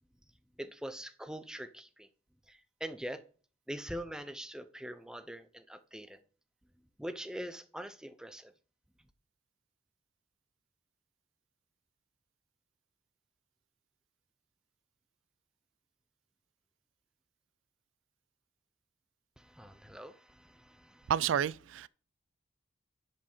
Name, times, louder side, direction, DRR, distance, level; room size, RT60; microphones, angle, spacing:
voice 1, 0.6-2.1 2.5-3.2 3.7-6.2 7.0-8.5 19.4-21.1, equal, 5° right, 0.7 m, -43 dB
voice 2, 21.1-21.9, right 9 dB, 85° right, 0.3 m, -30 dB
11.0 x 5.3 x 5.6 m
head